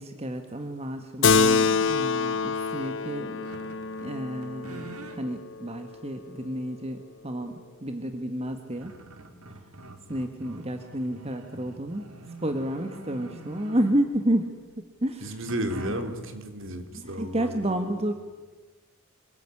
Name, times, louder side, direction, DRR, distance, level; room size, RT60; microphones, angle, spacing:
voice 1, 0.0-3.4 4.0-8.9 9.5-9.6 10.1-12.1 12.4-15.4 15.9-16.0 16.9-18.1, right 1 dB, 30° right, 7 dB, 1.5 m, -31 dB
Keyboard (musical), 1.2-6.1, left 5 dB, 55° left, 0.8 m, -26 dB
sound 1, 3.4-4.1 4.4-5.2 5.9-6.0 8.1-8.2 8.5-14.2 15.5-16.3, right 2 dB, 90° right, 3.3 m, -45 dB
voice 2, 15.2-17.8, right 1 dB, 60° right, 7 dB, 3.4 m, -33 dB
27.0 x 21.0 x 9.8 m, 1.3 s
head